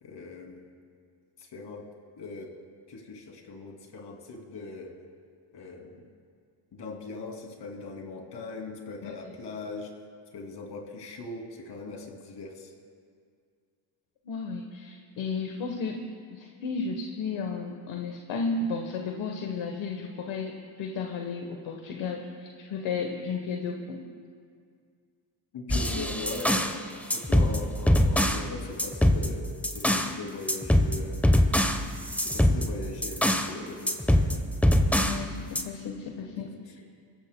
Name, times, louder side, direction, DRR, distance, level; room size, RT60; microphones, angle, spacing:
voice 1, 0.0-0.7 1.4-1.8 2.2-2.5 2.9-4.9 5.5-6.1 6.7-9.9 10.3-12.7 25.5-26.6 27.1-31.3 32.2-34.4 36.1-36.3, left 3 dB, 60° left, 2 dB, 2.8 m, -40 dB
voice 2, 14.2-16.0 16.3-24.0 25.7-26.0 35.0-36.7, left 4 dB, 75° left, 3 dB, 1.3 m, -33 dB
sound 1, 25.7-26.8 27.1-28.5 28.8-30.1 30.5-33.5 33.9-35.2 35.5-35.6, left 1 dB, 5° left, 0.9 m, -23 dB
25.5 x 14.5 x 2.2 m, 2.1 s
cardioid pair, 85°, 48 cm